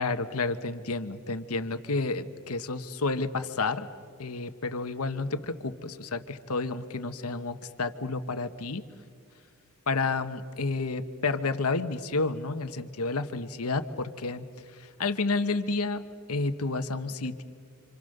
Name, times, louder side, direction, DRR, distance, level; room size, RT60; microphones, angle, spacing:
voice 1, 0.0-3.9 4.2-8.8 9.9-14.5 14.7-16.0 16.3-17.4, left 3 dB, 80° left, 10 dB, 1.2 m, -30 dB
29.5 x 26.5 x 6.7 m, 2.1 s
head